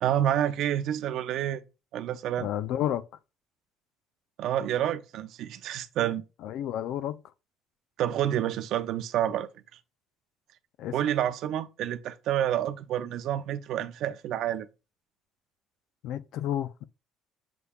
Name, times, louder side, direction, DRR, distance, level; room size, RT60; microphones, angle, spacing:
voice 1, 0.0-1.6 1.9-2.5 4.4-6.2 8.0-9.5 10.9-14.7, right 11 dB, 65° right, 0.5 m, -28 dB
voice 2, 2.4-3.0 6.4-7.2 10.8-10.9 16.0-16.9, left 11 dB, 70° left, 0.4 m, -31 dB
5.8 x 3.4 x 2.3 m
cardioid pair, 100°, 0 cm